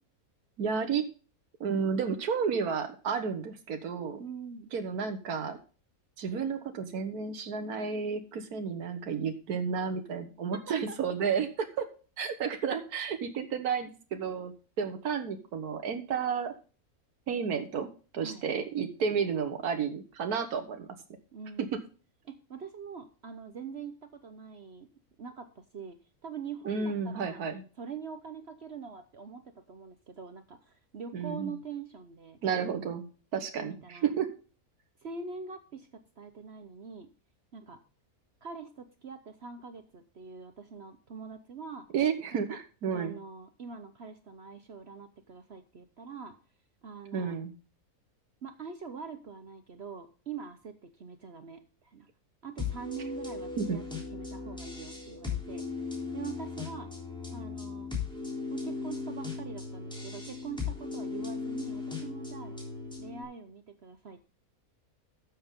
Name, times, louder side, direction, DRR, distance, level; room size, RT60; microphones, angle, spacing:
voice 1, 0.6-1.0 1.6-4.2 4.7-5.6 6.2-11.9 12.2-16.5 17.3-17.9 18.1-20.9 26.7-27.6 31.1-31.5 32.4-33.7 34.0-34.3 41.9-43.1 47.1-47.5 53.6-53.8, right 6 dB, 90° right, 7 dB, 1.6 m, -32 dB
voice 2, 4.2-4.7 10.5-11.0 18.2-18.5 21.3-21.7 22.2-24.9 25.2-27.4 27.8-32.4 33.3-34.1 35.0-37.1 37.5-37.8 38.4-41.9 42.3-42.6 42.9-46.4 46.8-47.4 48.4-52.1 52.4-53.8 54.1-55.7 56.1-56.9 57.3-57.9 58.5-62.6 63.0-64.3, right 6 dB, 50° right, 8 dB, 1.1 m, -44 dB
sound 1, 52.6-63.2, left 4 dB, 5° left, 3.5 m, -37 dB
12.5 x 7.8 x 3.7 m, 0.36 s
omnidirectional pair, 1.6 m